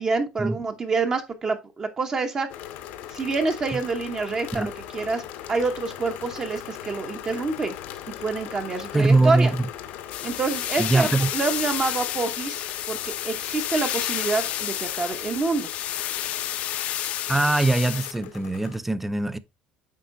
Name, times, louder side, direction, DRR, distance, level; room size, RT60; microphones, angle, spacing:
voice 1, 0.0-2.5 3.1-5.2 5.5-7.7 8.2-9.5 10.2-15.7, right 4 dB, 25° right, 0.7 m, -27 dB
sound 1, 2.5-18.8, left 11 dB, 80° left, 1.0 m, -40 dB
voice 2, 8.9-9.7 10.8-11.3 17.3-19.4, right 2 dB, 5° right, 0.3 m, -22 dB
sound 2, 10.1-18.1, left 12 dB, 55° left, 0.6 m, -30 dB
8.3 x 5.0 x 2.5 m
cardioid pair, 160°, 3 cm